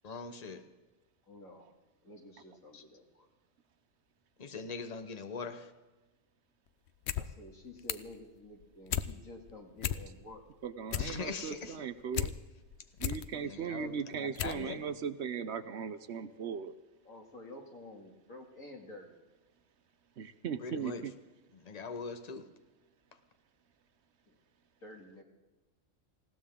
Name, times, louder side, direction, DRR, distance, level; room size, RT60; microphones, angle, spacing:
voice 1, 0.0-0.6 2.7-2.8 4.4-5.7 11.0-11.8 13.4-14.8 20.6-21.0 21.5-22.5, left 4 dB, 35° left, 8 dB, 1.1 m, -41 dB
voice 2, 1.3-1.6 2.0-3.3 7.1-10.5 17.0-19.1 24.3-24.4 24.8-25.2, left 1 dB, 90° left, 1 dB, 2.8 m, -50 dB
sound 1, 6.9-7.3 7.5-8.2 8.5-9.1 9.5-9.6 9.8-10.4 10.7-12.3 12.7-13.2 13.8-13.9 14.4-14.6 14.9-15.0, left 10 dB, 60° left, 0.9 m, -34 dB
voice 3, 10.6-12.3 13.0-16.7 20.2-21.1, right 7 dB, 60° right, 13 dB, 0.9 m, -38 dB
20.0 x 16.5 x 3.7 m, 1.2 s
omnidirectional pair, 1.3 m